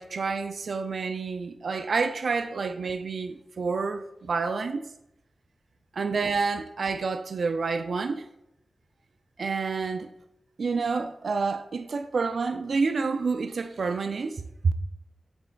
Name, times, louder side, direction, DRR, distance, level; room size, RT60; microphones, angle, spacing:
voice 1, 0.0-4.9 5.9-8.3 9.4-10.1 10.6-14.7, right 4 dB, 60° right, 0.4 m, -28 dB
7.8 x 3.4 x 4.5 m
wide cardioid pair, 145°, 0 cm